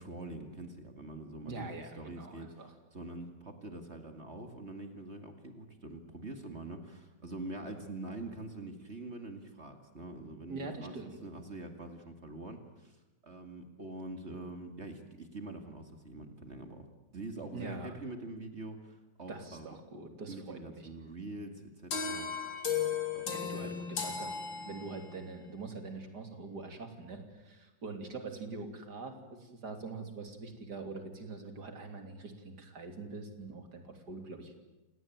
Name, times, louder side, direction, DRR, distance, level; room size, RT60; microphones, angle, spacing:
voice 1, 0.0-10.9 11.2-16.9 17.1-19.7 20.3-22.3 23.1-23.7, right 2 dB, 35° right, 6 dB, 2.5 m, -45 dB
voice 2, 1.4-2.7 10.5-11.2 17.5-18.0 19.3-20.9 23.3-34.5, right 3 dB, 60° right, 6 dB, 3.7 m, -44 dB
sound 1, 21.9-25.2, left 6 dB, 85° left, 3.5 m, -35 dB
30.0 x 18.0 x 9.3 m, 1.0 s
omnidirectional pair, 2.0 m